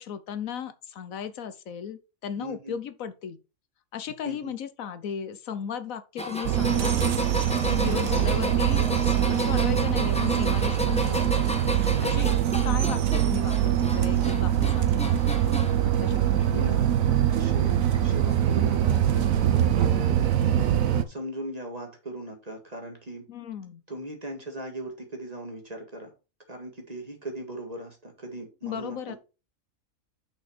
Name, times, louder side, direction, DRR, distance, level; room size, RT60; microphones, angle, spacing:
voice 1, 0.0-3.4 3.9-7.2 7.7-11.5 12.0-12.3 12.6-15.3 15.8-16.6 23.3-23.8 28.6-29.2, left 8 dB, 75° left, 1.2 m, -36 dB
voice 2, 2.4-2.8 4.2-4.5 16.5-19.8 20.5-20.8 21.1-23.3 23.9-26.1 26.5-29.2, right 1 dB, 25° right, 2.0 m, -39 dB
sound 1, 6.2-15.8 16.2-16.8 17.9-18.0 19.2-19.3, left 1 dB, 5° left, 0.9 m, -33 dB
sound 2, 6.4-21.0, right 11 dB, 70° right, 1.2 m, -23 dB
6.3 x 5.6 x 5.0 m
omnidirectional pair, 1.5 m